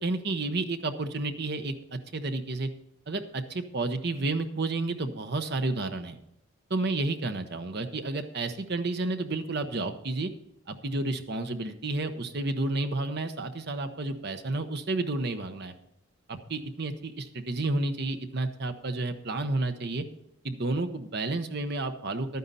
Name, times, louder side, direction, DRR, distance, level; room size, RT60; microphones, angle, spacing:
voice 1, 0.0-2.7 3.1-6.2 6.7-10.3 10.7-15.7 16.3-20.0 20.4-22.4, right 2 dB, 55° right, 8 dB, 0.9 m, -31 dB
11.5 x 9.4 x 4.1 m, 0.81 s
head